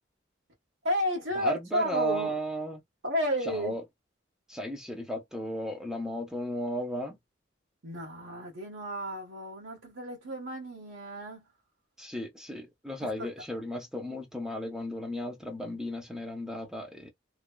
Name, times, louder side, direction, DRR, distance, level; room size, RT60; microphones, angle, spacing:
voice 1, 0.8-2.3 3.0-3.7 7.8-11.4 13.0-13.3, equal, 85° right, 1.3 m, -32 dB
voice 2, 1.4-2.8 3.5-3.8 4.5-7.2 12.0-17.1, equal, 5° right, 0.7 m, -35 dB
3.2 x 2.0 x 2.3 m
head